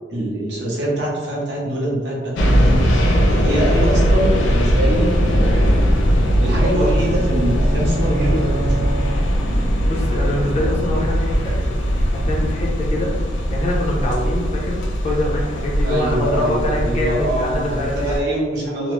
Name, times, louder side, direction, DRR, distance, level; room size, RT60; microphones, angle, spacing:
voice 1, 0.1-5.6 6.4-9.0 15.8-18.9, right 1 dB, 70° right, -5 dB, 0.9 m, -24 dB
sound 1, 2.4-18.2, equal, 90° left, 0.5 m, -19 dB
sound 2, 6.1-9.7, right 2 dB, 20° right, 0.6 m, -29 dB
voice 2, 9.9-11.8 12.1-13.1 13.5-18.2, left 1 dB, 35° left, -4 dB, 0.6 m, -24 dB
3.1 x 2.0 x 3.0 m, 1.4 s
head